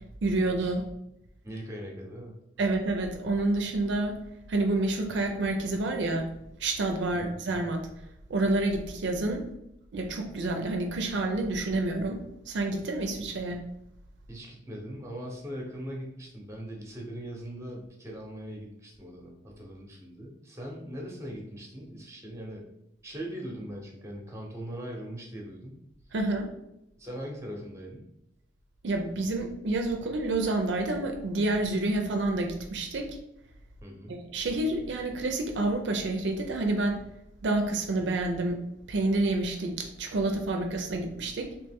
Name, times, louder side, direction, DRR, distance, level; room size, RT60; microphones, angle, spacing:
voice 1, 0.2-0.9 2.6-4.2 4.5-6.3 6.6-7.8 8.3-9.5 9.9-12.2 12.5-13.6 26.1-26.5 28.8-33.2 34.1-37.0 37.4-38.6 38.9-41.5, right 2 dB, 65° right, 4 dB, 0.4 m, -28 dB
voice 2, 1.4-2.3 7.1-7.3 14.3-22.6 23.0-25.8 27.0-28.0 33.8-34.2, equal, 15° right, 0 dB, 0.8 m, -40 dB
3.1 x 2.9 x 3.4 m, 0.82 s
head